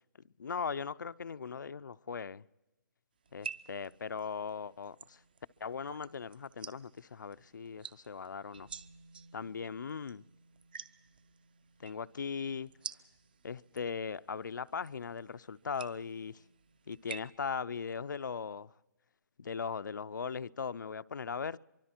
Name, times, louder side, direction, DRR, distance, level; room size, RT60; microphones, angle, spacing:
voice 1, 0.4-2.4 3.3-5.2 5.6-8.7 9.3-10.2 11.8-12.7 13.4-16.4 16.9-18.7 19.4-21.6, left 6 dB, 70° left, 14 dB, 0.6 m, -39 dB
sound 1, 3.3-17.2, right 6 dB, 30° right, 0.6 m, -50 dB
24.0 x 24.0 x 4.4 m, 1.0 s
hypercardioid pair, 180°, 10 cm